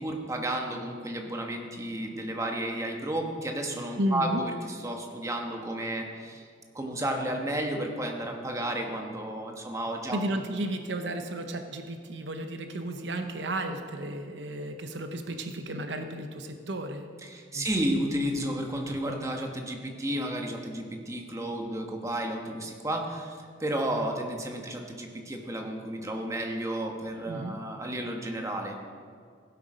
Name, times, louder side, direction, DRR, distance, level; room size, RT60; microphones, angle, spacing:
voice 1, 0.0-4.4 4.8-6.4 6.7-10.2 17.2-28.7, right 1 dB, 15° right, 2 dB, 1.2 m, -32 dB
voice 2, 4.0-4.4 10.0-17.1 17.5-17.7 27.3-27.6, right 1 dB, 65° right, 6 dB, 0.8 m, -33 dB
16.5 x 7.9 x 5.1 m, 2.1 s
head